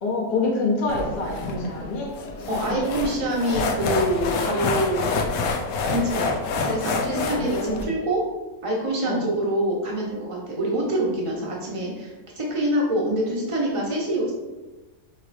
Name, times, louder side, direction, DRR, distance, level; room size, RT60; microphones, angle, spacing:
voice 1, 0.0-2.1 2.4-2.9 6.5-6.7 7.3-7.8 9.0-9.2, left 3 dB, 40° left, -3 dB, 0.8 m, -27 dB
sound 1, 0.9-7.8, left 4 dB, 85° left, 1.0 m, -27 dB
voice 2, 2.5-5.1 5.8-8.3 8.6-12.1 12.4-14.3, right 1 dB, 30° right, -2 dB, 0.8 m, -25 dB
5.4 x 3.0 x 2.5 m, 1.1 s
omnidirectional pair, 1.4 m